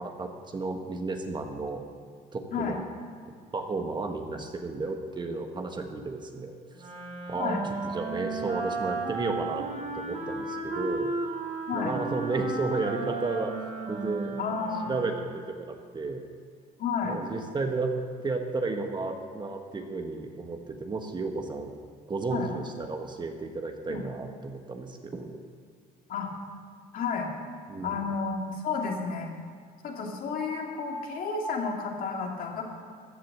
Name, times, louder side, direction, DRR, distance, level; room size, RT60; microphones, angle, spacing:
voice 1, 0.0-1.8 2.3-2.8 3.5-6.9 7.3-7.6 7.9-9.6 9.9-11.1 11.7-13.5 13.9-14.4 14.9-16.3 17.1-17.9 18.2-21.7 22.1-25.4 27.7-28.0, right 3 dB, 25° right, 4 dB, 1.3 m, -33 dB
Wind instrument woodwind instrument, 6.7-15.4, right 3 dB, 45° right, 3.2 m, -34 dB
voice 2, 14.4-14.9 16.8-17.2 22.3-22.5 23.9-24.0 26.1-26.3 26.9-27.3 27.8-29.3 29.8-32.6, left 5 dB, 55° left, 1 dB, 2.3 m, -31 dB
14.0 x 7.7 x 7.2 m, 2.1 s
cardioid pair, 110°, 17 cm